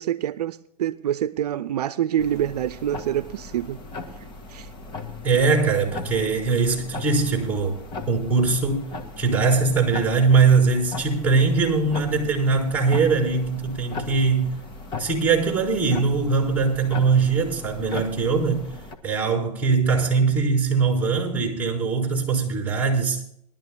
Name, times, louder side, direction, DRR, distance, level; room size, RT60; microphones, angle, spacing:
voice 1, 0.0-3.8 4.5-4.7, right 11 dB, 70° right, 0.7 m, -26 dB
sound 1, 2.2-18.9, left 3 dB, 25° left, 1.8 m, -38 dB
voice 2, 5.2-7.8 8.1-8.9 9.2-14.5 15.0-18.7 19.0-23.2, right 4 dB, 5° right, 4.1 m, -21 dB
22.0 x 12.5 x 2.2 m
hypercardioid pair, 125°, 21 cm